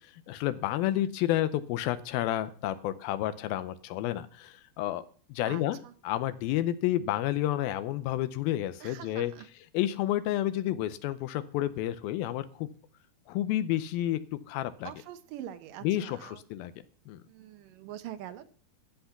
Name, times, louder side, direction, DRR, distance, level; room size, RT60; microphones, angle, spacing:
voice 1, 0.3-5.0 5.3-5.8 6.0-9.3 9.7-12.7 13.3-14.2 14.5-14.9 15.8-16.7 17.1-17.2, left 13 dB, 85° left, 13 dB, 2.5 m, -30 dB
voice 2, 5.4-5.9 8.8-9.5 14.8-16.4 17.3-18.4, right 11 dB, 75° right, 11 dB, 2.3 m, -44 dB
14.0 x 8.0 x 5.9 m, 0.43 s
omnidirectional pair, 4.2 m